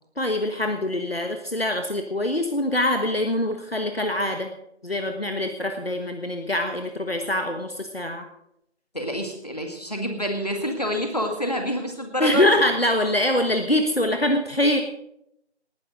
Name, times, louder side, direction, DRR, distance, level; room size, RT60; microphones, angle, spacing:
voice 1, 0.2-4.5 4.8-8.2 12.2-14.8, left 1 dB, 60° left, 5 dB, 1.5 m, -24 dB
voice 2, 8.9-12.6, equal, 35° left, 3 dB, 2.1 m, -27 dB
19.0 x 11.0 x 3.9 m, 0.76 s
figure-of-eight pair, 180°, 34 cm